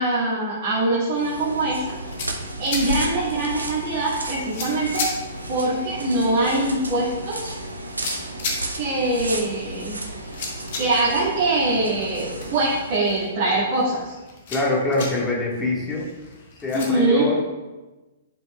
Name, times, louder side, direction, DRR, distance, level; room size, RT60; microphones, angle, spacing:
voice 1, 0.0-1.8 2.6-5.1 5.5-7.5 8.8-10.0 10.7-14.1 16.7-17.3, right 2 dB, 40° right, -8 dB, 2.1 m, -23 dB
sound 1, 1.1-13.0, right 2 dB, 80° right, 0.7 m, -33 dB
sound 2, 1.8-16.9, left 3 dB, 45° left, 1.3 m, -37 dB
voice 2, 14.5-16.1 16.6-17.6, left 2 dB, 15° left, -3 dB, 1.8 m, -24 dB
11.0 x 5.3 x 2.4 m, 1.1 s
figure-of-eight pair, 110°, 0 cm